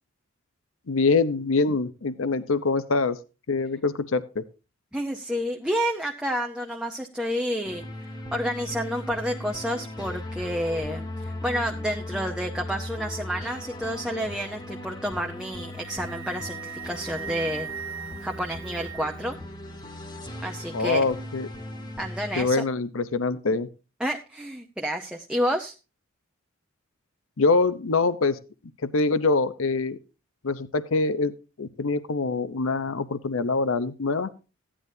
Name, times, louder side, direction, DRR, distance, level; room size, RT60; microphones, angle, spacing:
voice 1, 0.9-3.2 3.5-4.4 20.7-21.5 22.4-23.7 27.4-28.4 28.8-30.0 30.4-34.3, left 3 dB, 75° left, 14 dB, 0.7 m, -24 dB
voice 2, 4.9-7.8 8.3-17.7 18.2-19.4 20.4-21.0 22.0-22.6 24.0-25.7, equal, 5° right, 2 dB, 0.7 m, -30 dB
sound 1, 7.6-22.5, left 1 dB, 20° left, 1.3 m, -38 dB
Wind instrument woodwind instrument, 15.4-19.3, right 8 dB, 80° right, 0.8 m, -39 dB
15.0 x 9.9 x 2.7 m, 0.31 s
head